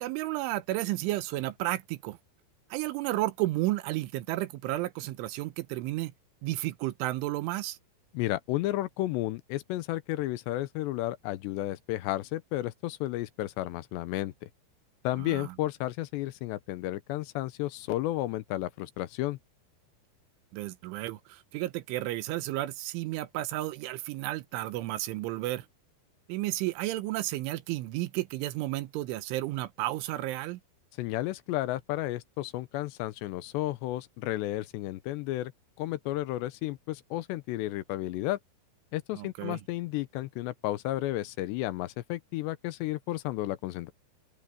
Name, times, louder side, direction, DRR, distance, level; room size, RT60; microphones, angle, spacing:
voice 1, 0.0-2.2 2.7-6.1 6.4-7.8 15.2-15.5 20.5-25.7 26.3-30.6 39.2-39.6, right 17 dB, 85° right, 3.5 m, -32 dB
voice 2, 8.1-14.3 15.0-19.4 31.0-35.5 35.8-38.4 38.9-43.9, left 16 dB, 75° left, 2.8 m, -32 dB
open air
omnidirectional pair, 5.4 m